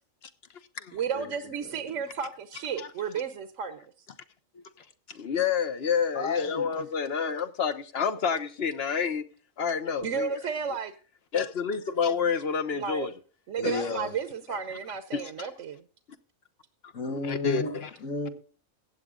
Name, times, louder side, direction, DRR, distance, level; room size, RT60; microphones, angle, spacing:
voice 1, 0.9-3.9 10.0-10.9 12.7-13.1 13.5-15.8, right 6 dB, 65° right, 1.2 m, -33 dB
voice 2, 1.6-1.9 4.5-4.6 6.1-6.7 13.6-14.1 16.9-18.3, left 3 dB, 75° left, 2.5 m, -34 dB
voice 3, 5.1-9.2 9.6-10.3 11.3-13.1 13.6-13.8 15.1-15.2 17.3-17.9, left 6 dB, 50° left, 1.1 m, -28 dB
15.5 x 9.1 x 3.8 m
omnidirectional pair, 1.4 m